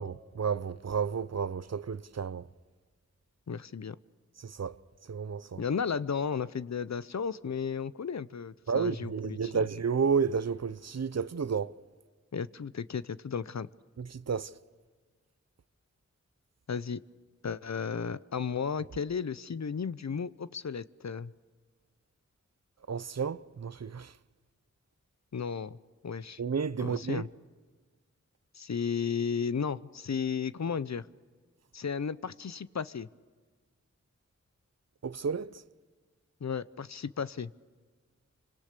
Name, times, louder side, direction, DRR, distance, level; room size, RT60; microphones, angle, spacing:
voice 1, 0.0-2.5 4.4-4.8 5.1-5.6 8.7-11.7 14.0-14.5 22.9-24.1 26.4-27.3 35.0-35.6, right 6 dB, 60° right, 0.7 m, -31 dB
voice 2, 3.5-4.0 5.6-9.6 12.3-13.7 16.7-17.0 17.4-21.3 25.3-25.8 26.0-26.4 26.8-27.3 28.5-31.1 31.7-33.1 36.4-37.5, left 6 dB, 65° left, 0.7 m, -34 dB
28.5 x 25.0 x 6.7 m
wide cardioid pair, 60°, 30 cm